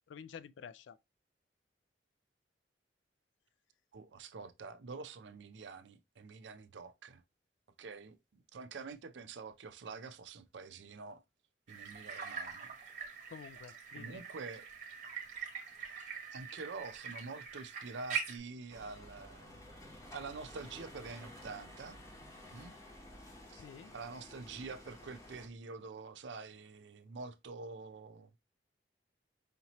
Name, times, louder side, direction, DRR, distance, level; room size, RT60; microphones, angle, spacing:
voice 1, 0.1-1.0 13.3-14.2 23.5-23.9, left 7 dB, 90° left, 0.3 m, -50 dB
voice 2, 3.9-7.2 7.8-11.2 11.7-12.7 13.9-14.7 16.3-19.8 20.1-22.0 22.5-22.7 23.5-23.6 23.9-28.4, right 4 dB, 80° right, 0.5 m, -47 dB
sound 1, 11.7-18.4, right 6 dB, 40° right, 1.0 m, -43 dB
sound 2, 18.7-25.5, left 1 dB, 15° left, 0.9 m, -53 dB
5.0 x 2.8 x 2.9 m
head